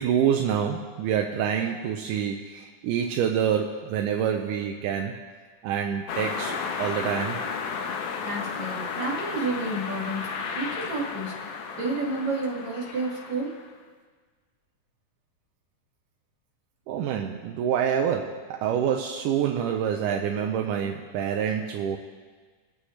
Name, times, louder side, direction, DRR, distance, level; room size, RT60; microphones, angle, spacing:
voice 1, 0.0-5.1 5.6-7.4 16.9-22.0, right 8 dB, 85° right, 2 dB, 2.2 m, -27 dB
sound 1, 6.1-13.7, left 5 dB, 80° left, 2.6 m, -33 dB
voice 2, 8.2-10.2 10.6-13.6, right 2 dB, 60° right, -3 dB, 3.4 m, -30 dB
22.5 x 8.5 x 3.2 m, 1.5 s
omnidirectional pair, 3.6 m